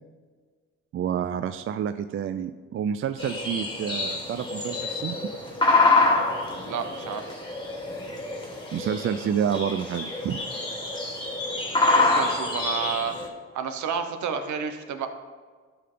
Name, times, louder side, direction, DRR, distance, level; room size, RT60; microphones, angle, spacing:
voice 1, 0.9-5.2 8.7-10.4, right 8 dB, 45° right, 10 dB, 0.4 m, -29 dB
sound 1, 3.2-13.3, left 3 dB, 15° left, 1.8 m, -26 dB
voice 2, 6.6-7.3 11.9-13.1 13.5-15.1, right 6 dB, 70° right, 7 dB, 1.0 m, -30 dB
12.0 x 5.7 x 3.8 m, 1.5 s
cardioid pair, 90°, 30 cm